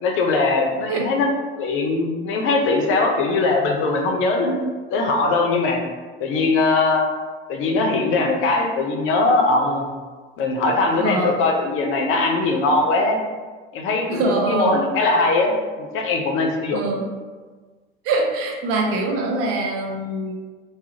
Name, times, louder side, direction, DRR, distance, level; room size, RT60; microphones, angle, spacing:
voice 1, 0.0-1.3 1.6-4.6 4.9-5.8 6.2-7.1 7.5-9.9 10.4-13.2 13.7-16.9, left 3 dB, 45° left, 2 dB, 0.5 m, -20 dB
voice 2, 11.0-11.4 14.1-14.8 16.7-17.1 18.0-20.4, right 2 dB, 50° right, 0 dB, 0.6 m, -23 dB
2.4 x 2.0 x 2.8 m, 1.4 s
figure-of-eight pair, 65°, 29 cm